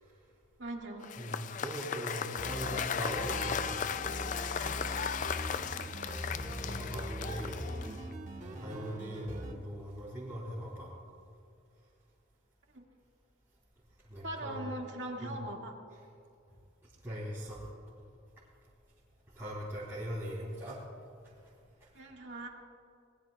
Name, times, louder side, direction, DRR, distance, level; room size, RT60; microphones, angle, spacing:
voice 1, 0.6-1.1 6.0-6.1 12.7-12.8 14.2-15.8 21.9-22.5, right 1 dB, 60° right, 0 dB, 2.1 m, -40 dB
Cheering / Applause / Crowd, 1.0-8.1, left 7 dB, 40° left, 0.3 m, -36 dB
voice 2, 1.2-3.9 6.4-7.6 8.5-10.9 14.1-14.7 15.2-15.4 17.0-17.6 19.3-20.8 21.2-21.3 21.8-21.9, right 1 dB, 15° right, -9 dB, 3.1 m, -40 dB
sound 1, 2.4-9.5, right 1 dB, 35° right, 1.5 m, -41 dB
23.5 x 19.5 x 2.4 m, 2.5 s
head